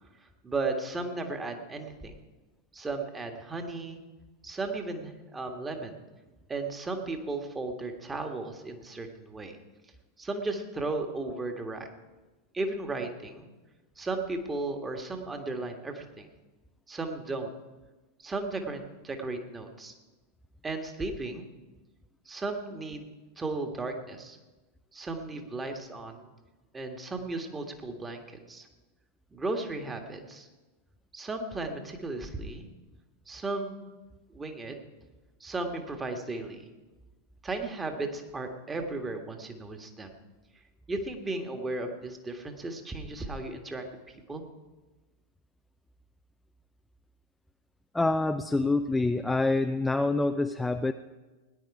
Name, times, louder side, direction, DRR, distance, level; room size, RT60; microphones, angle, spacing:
voice 1, 0.2-2.1 2.7-4.0 4.4-6.0 6.5-9.6 10.2-11.9 12.5-13.5 14.0-16.3 16.9-17.5 18.2-19.9 20.6-21.5 22.2-24.4 24.9-26.3 26.7-28.7 29.3-30.5 31.1-32.7 33.3-33.9 34.3-34.7 35.4-36.7 37.4-40.1 40.9-43.8 44.3-44.4, right 3 dB, 15° right, 4 dB, 1.7 m, -35 dB
voice 2, 47.9-50.9, left 2 dB, 5° left, 7 dB, 0.5 m, -26 dB
18.0 x 10.5 x 4.8 m, 1.2 s
figure-of-eight pair, 90°, 0 cm